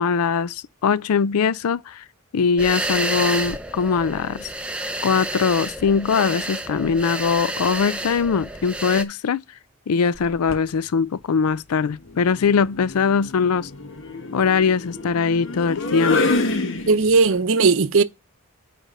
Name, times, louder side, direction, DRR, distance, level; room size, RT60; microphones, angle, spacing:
voice 1, 0.0-2.0 2.3-4.5 5.0-9.4 9.9-13.7 14.3-16.3, left 5 dB, 90° left, 0.4 m, -21 dB
sound 1, 2.6-9.0, right 1 dB, 5° right, 0.5 m, -29 dB
sound 2, 10.2-10.7 12.1-17.3, left 3 dB, 55° left, 1.1 m, -27 dB
voice 2, 16.9-18.0, right 4 dB, 65° right, 0.6 m, -17 dB
9.1 x 3.4 x 5.4 m
head